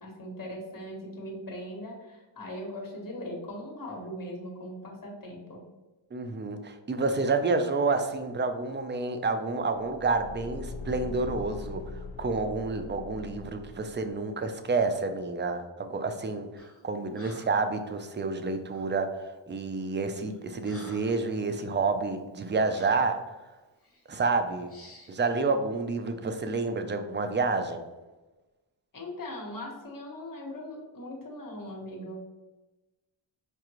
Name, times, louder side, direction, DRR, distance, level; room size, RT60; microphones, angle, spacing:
voice 1, 0.0-5.6 28.9-32.2, left 1 dB, 45° left, 0 dB, 1.2 m, -40 dB
voice 2, 6.1-11.8 12.2-16.5 16.8-19.1 19.5-23.2 24.1-24.7 25.1-27.8, right 3 dB, 25° right, 7 dB, 0.4 m, -29 dB
Car / Engine, 9.7-14.2, left 3 dB, 75° left, 0.7 m, -41 dB
Breathing, 16.6-16.8 17.1-17.7 18.7-19.0 19.6-19.8 20.2-21.3 21.7-21.9 22.7-23.1 23.8-24.0 24.7-25.2, left 2 dB, 30° left, 0.9 m, -51 dB
4.6 x 2.5 x 3.0 m, 1.1 s
wide cardioid pair, 75°, 48 cm